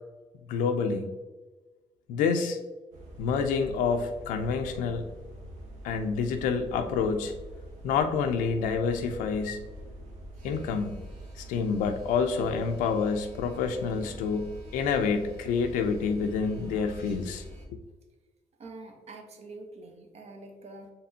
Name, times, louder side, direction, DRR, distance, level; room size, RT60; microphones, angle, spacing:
voice 1, 0.5-1.1 2.1-2.6 3.2-5.1 5.8-7.3 7.8-9.6 10.4-11.0 11.4-17.4 17.7-17.8, left 5 dB, 90° left, 6 dB, 0.4 m, -28 dB
sound 1, 2.9-17.7, right 1 dB, 85° right, 0.9 m, -44 dB
voice 2, 18.6-20.9, right 2 dB, 55° right, 3 dB, 0.9 m, -45 dB
4.2 x 3.4 x 2.7 m, 1.2 s
cardioid pair, 75°, 13 cm